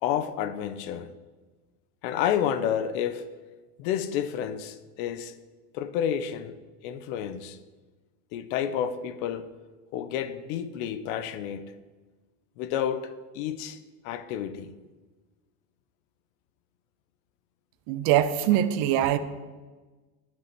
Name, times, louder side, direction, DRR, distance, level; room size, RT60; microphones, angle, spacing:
voice 1, 0.0-1.1 2.0-3.3 3.8-5.3 5.7-6.6 6.8-7.6 8.3-9.5 9.9-11.7 12.6-14.7, left 9 dB, 65° left, 0.9 m, -30 dB
voice 2, 17.9-19.2, right 11 dB, 50° right, 0.7 m, -23 dB
11.5 x 5.4 x 6.1 m
supercardioid pair, 140°, 45 cm